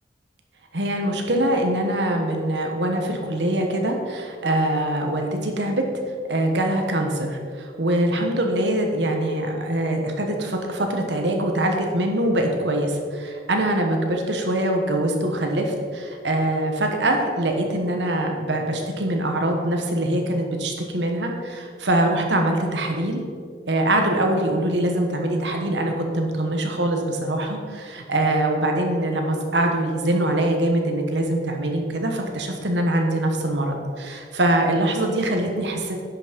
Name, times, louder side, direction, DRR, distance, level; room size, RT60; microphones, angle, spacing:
voice 1, 0.7-5.8 6.3-23.2 23.7-36.0, right 1 dB, 90° right, 3 dB, 1.5 m, -23 dB
10.5 x 6.2 x 5.3 m, 2.1 s
head